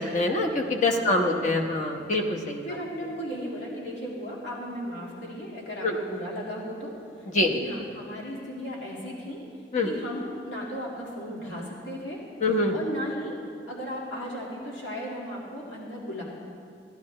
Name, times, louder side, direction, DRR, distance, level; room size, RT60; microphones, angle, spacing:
voice 1, 0.1-2.6 5.8-5.9 7.3-7.5 9.7-9.9 12.4-12.7, left 2 dB, 40° left, 1 dB, 1.0 m, -24 dB
voice 2, 1.0-1.4 2.6-9.4 9.8-13.4 13.7-16.2, equal, 85° left, -4 dB, 2.1 m, -36 dB
15.0 x 11.5 x 3.2 m, 2.5 s
head